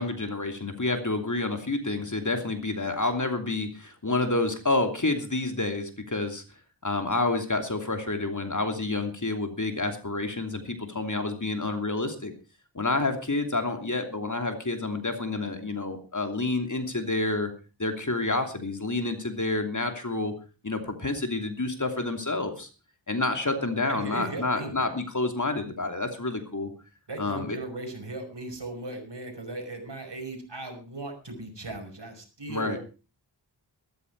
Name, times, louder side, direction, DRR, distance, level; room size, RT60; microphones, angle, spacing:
voice 1, 0.0-6.4 6.8-12.3 12.7-17.5 17.8-20.3 20.6-22.7 23.1-26.7 27.2-27.6 32.5-32.8, left 2 dB, 40° left, 6 dB, 2.9 m, -29 dB
voice 2, 23.9-24.7 27.1-32.8, right 2 dB, 65° right, 4 dB, 5.3 m, -37 dB
14.0 x 14.0 x 4.7 m, 0.34 s
wide cardioid pair, 65°, 44 cm